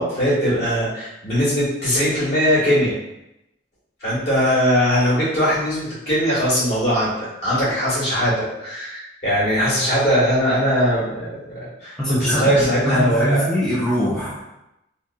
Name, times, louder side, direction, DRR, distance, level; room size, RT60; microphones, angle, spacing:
voice 1, 0.0-3.0 4.0-13.5, equal, 65° left, -9 dB, 1.4 m, -20 dB
voice 2, 12.0-12.6 12.8-14.4, equal, 5° left, -8 dB, 0.3 m, -22 dB
2.7 x 2.5 x 2.3 m, 0.90 s
head